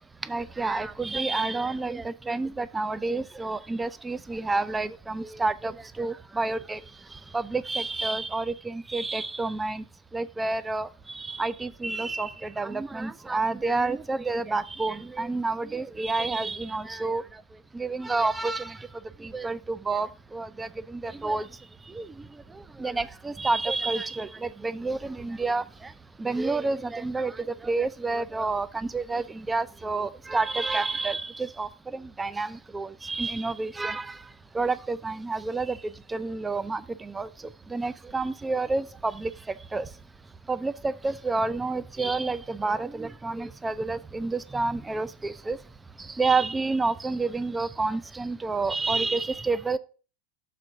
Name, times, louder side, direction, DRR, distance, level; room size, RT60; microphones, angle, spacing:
voice 1, 0.3-6.8 7.3-9.8 10.1-10.9 11.1-17.2 17.7-18.8 19.2-21.4 21.9-22.0 22.8-25.6 26.2-27.3 27.6-32.5 32.7-34.2 34.5-35.8 36.1-37.3 37.7-39.3 39.7-39.8 40.5-45.6 46.2-49.8, right 3 dB, 15° right, 0.5 m, -29 dB
6.7 x 3.7 x 6.2 m
hypercardioid pair, 90°, 0 cm